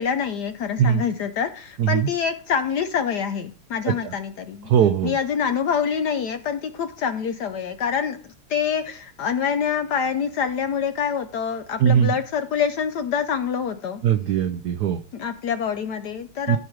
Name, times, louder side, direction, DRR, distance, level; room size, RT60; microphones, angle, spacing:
voice 1, 0.0-4.7 5.0-8.2 8.5-14.0 15.1-16.6, left 7 dB, 70° left, 1.0 m, -26 dB
voice 2, 1.8-2.1 3.9-4.1 4.7-5.1 11.8-12.1 14.0-15.0 16.5-16.6, right 9 dB, 90° right, 0.8 m, -20 dB
15.0 x 4.9 x 4.6 m
omnidirectional pair, 2.4 m